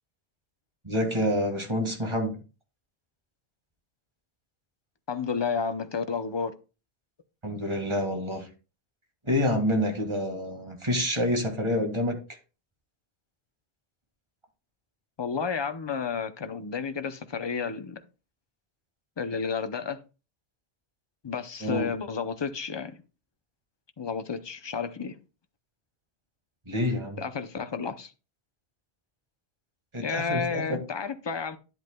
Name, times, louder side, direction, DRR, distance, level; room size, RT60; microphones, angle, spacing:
voice 1, 0.8-2.3 7.4-8.5 9.3-12.2 21.6-21.9 26.7-27.2 29.9-30.8, left 1 dB, 30° right, 2.0 m, -27 dB
voice 2, 5.1-6.5 15.2-18.0 19.2-20.0 21.2-23.0 24.0-25.2 27.2-28.1 30.0-31.6, left 5 dB, 30° left, 0.7 m, -31 dB
11.0 x 8.1 x 2.3 m
omnidirectional pair, 1.1 m